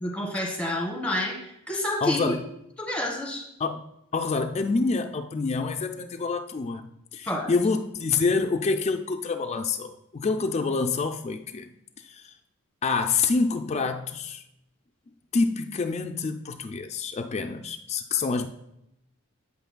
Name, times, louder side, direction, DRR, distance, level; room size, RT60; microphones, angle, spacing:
voice 1, 0.0-1.4 1.7-2.4 2.8-3.4 7.2-7.5, left 1 dB, 5° left, 1 dB, 1.4 m, -28 dB
voice 2, 2.0-2.4 3.6-3.8 4.1-11.7 12.0-12.3 12.8-14.4 15.3-18.5, left 4 dB, 30° left, 5 dB, 0.3 m, -27 dB
8.0 x 7.9 x 2.2 m, 0.82 s
head